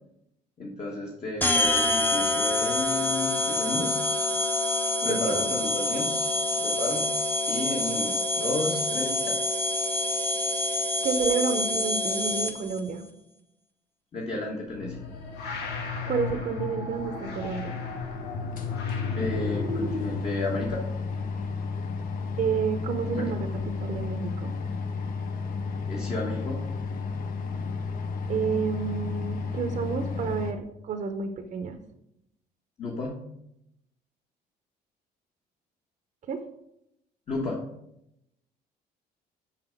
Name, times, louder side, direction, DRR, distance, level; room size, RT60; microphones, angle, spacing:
voice 1, 0.6-4.0 5.0-6.2 6.6-7.0 7.5-9.3 14.1-15.0 19.1-20.8 23.1-23.3 25.9-26.6 32.8-33.2 37.3-37.6, left 2 dB, 35° left, -2 dB, 1.3 m, -32 dB
sound 1, 1.4-12.8, left 2 dB, 10° left, 0.8 m, -26 dB
voice 2, 5.0-5.5 11.0-13.1 16.1-17.8 22.4-23.5 23.8-24.5 28.3-31.8 36.3-36.4, right 6 dB, 50° right, 6 dB, 0.8 m, -30 dB
sound 2, 14.7-20.2, left 4 dB, 85° left, 1.3 m, -34 dB
sound 3, 17.3-17.4 18.0-18.1 18.4-30.5, left 4 dB, 55° left, 0.9 m, -32 dB
5.8 x 5.4 x 5.1 m, 0.81 s
cardioid pair, 110°, 17 cm